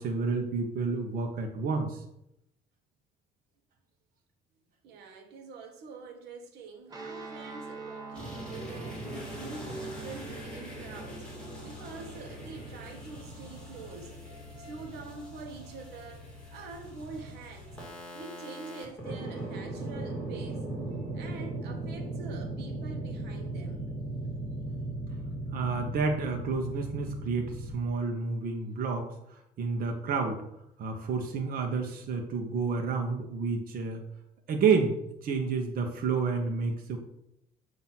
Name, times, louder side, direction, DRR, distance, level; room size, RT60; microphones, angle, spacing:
voice 1, 0.0-2.0 25.5-30.4 30.8-34.0 34.5-35.0 35.2-37.0, right 5 dB, 60° right, 2 dB, 1.0 m, -30 dB
voice 2, 4.8-11.3 11.6-14.1 14.6-17.8 18.1-20.6 21.1-23.9, right 4 dB, 80° right, 3 dB, 1.1 m, -45 dB
sound 1, 6.9-17.2, right 4 dB, 20° right, 1.3 m, -47 dB
sound 2, 8.1-27.7, right 1 dB, 5° left, 2.7 m, -39 dB
7.4 x 2.9 x 5.9 m, 0.82 s
cardioid pair, 110°, 17 cm